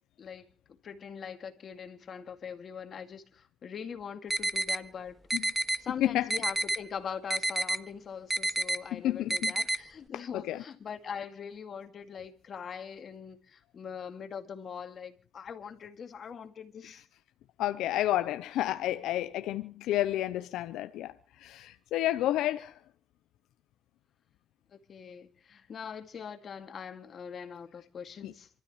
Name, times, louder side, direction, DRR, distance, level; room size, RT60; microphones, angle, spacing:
voice 1, 0.8-5.2 5.8-17.0 24.7-28.5, left 7 dB, 55° left, 2.1 m, -42 dB
sound 1, 4.3-4.8 5.3-5.8 6.3-6.8 7.3-7.8 8.3-8.8 9.3-9.8, right 1 dB, 10° right, 0.9 m, -29 dB
voice 2, 5.3-6.3 8.9-9.5 10.1-10.6 16.8-17.0 17.6-22.8 28.2-28.3, left 13 dB, 90° left, 0.6 m, -31 dB
28.0 x 13.0 x 3.1 m
cardioid pair, 90°, 0 cm